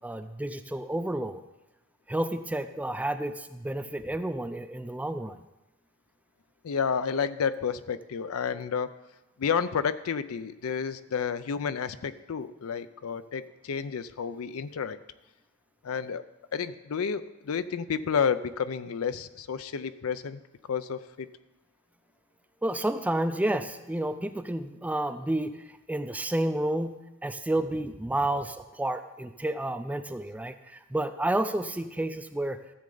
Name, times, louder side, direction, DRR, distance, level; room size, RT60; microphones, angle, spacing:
voice 1, 0.0-1.4 2.1-5.4 22.6-26.9 27.2-32.6, right 1 dB, 5° right, 10 dB, 0.4 m, -30 dB
voice 2, 6.6-8.9 9.4-15.0 15.8-16.2 16.5-20.4 20.7-21.3, left 6 dB, 75° left, 14 dB, 0.5 m, -30 dB
13.5 x 7.5 x 3.9 m, 0.99 s
head